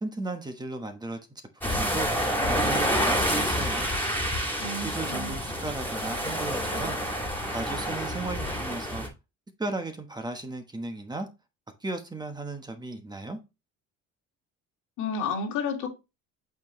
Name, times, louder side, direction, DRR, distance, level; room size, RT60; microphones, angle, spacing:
voice 1, 0.0-1.2 1.6-2.1 2.5-3.9 4.7-7.0 7.5-9.0 9.6-11.3 11.8-13.4, right 2 dB, 15° right, 1.1 m, -35 dB
sound 1, 1.6-9.1, equal, 5° left, 2.2 m, -28 dB
voice 2, 4.6-5.3 15.0-15.9, left 4 dB, 85° left, 2.3 m, -31 dB
8.3 x 4.7 x 3.1 m
cardioid pair, 135°, 30 cm